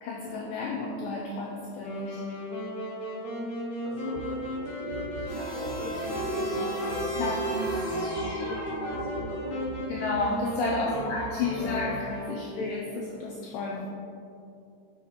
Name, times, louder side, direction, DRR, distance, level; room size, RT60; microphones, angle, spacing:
voice 1, 0.0-2.3 7.2-7.5 9.9-13.9, left 3 dB, 90° left, -1 dB, 1.9 m, -31 dB
Wind instrument woodwind instrument, 1.8-12.7, left 1 dB, 70° left, 1.3 m, -35 dB
voice 2, 3.8-9.7 10.9-11.1, right 1 dB, 55° right, -7 dB, 2.2 m, -39 dB
sound 1, 4.2-12.2, right 8 dB, 85° right, 2.6 m, -44 dB
sound 2, 5.3-9.6, right 1 dB, 55° left, 1.1 m, -35 dB
7.5 x 5.9 x 4.1 m, 2.5 s
omnidirectional pair, 4.6 m